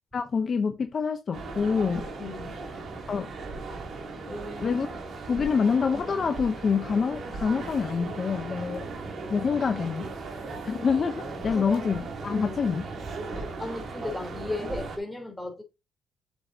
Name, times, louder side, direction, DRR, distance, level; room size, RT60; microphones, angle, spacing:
voice 1, 0.1-2.1 3.1-3.3 4.6-4.9 5.3-8.9 9.3-10.1 10.6-12.8, left 5 dB, 45° left, 0.8 m, -26 dB
sound 1, 1.3-15.0, right 3 dB, 55° right, 2.8 m, -37 dB
voice 2, 2.2-2.6 4.3-4.8 5.4-5.5 11.5-11.8 12.2-12.3 13.6-15.6, left 2 dB, 10° left, 3.5 m, -35 dB
7.7 x 7.3 x 2.8 m
cardioid pair, 90°, 0 cm